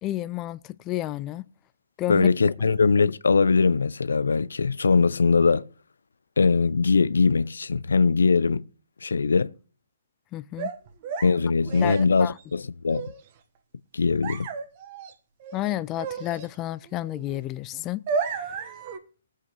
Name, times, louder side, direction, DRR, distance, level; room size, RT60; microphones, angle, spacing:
voice 1, 0.0-1.4 2.0-2.3 10.3-10.7 11.8-12.3 15.5-18.7, left 15 dB, 25° left, 0.4 m, -31 dB
voice 2, 2.1-5.7 6.4-8.6 9.0-9.5 11.2-13.0 13.9-14.5, left 4 dB, 80° left, 0.5 m, -21 dB
sound 1, 10.6-12.4 12.9-13.2 14.2-15.1 15.4-16.5 16.9-17.4 17.7-19.0, right 5 dB, 40° right, 1.4 m, -33 dB
18.5 x 8.1 x 3.2 m
hypercardioid pair, 140°, 0 cm